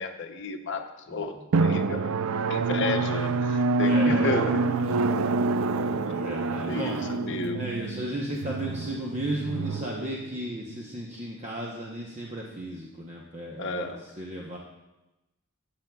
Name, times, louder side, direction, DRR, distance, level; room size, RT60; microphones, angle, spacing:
voice 1, 0.0-2.1 2.5-4.6 6.6-7.6 13.6-14.0, left 3 dB, 60° left, 6 dB, 0.8 m, -32 dB
voice 2, 1.1-1.4 3.8-4.4 4.7-7.0 7.5-14.6, right 1 dB, 35° right, -2 dB, 0.8 m, -35 dB
Drum, 1.5-10.8, right 3 dB, 70° right, 0.4 m, -27 dB
13.5 x 8.7 x 2.3 m, 1.0 s
head